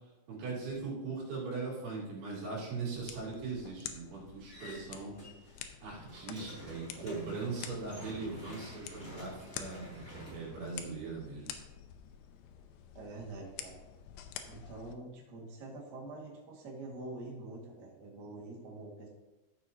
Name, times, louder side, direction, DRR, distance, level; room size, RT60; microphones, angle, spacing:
voice 1, 0.3-5.2 5.8-11.5, right 4 dB, 80° right, -6 dB, 5.3 m, -40 dB
sound 1, 3.0-15.0, left 9 dB, 80° left, 2.4 m, -49 dB
sound 2, 4.5-5.6 5.9-11.3, equal, 15° left, 2.8 m, -49 dB
voice 2, 12.9-13.8 14.4-19.1, right 2 dB, 55° right, -3 dB, 1.1 m, -45 dB
12.5 x 7.5 x 2.8 m, 1.0 s
omnidirectional pair, 5.3 m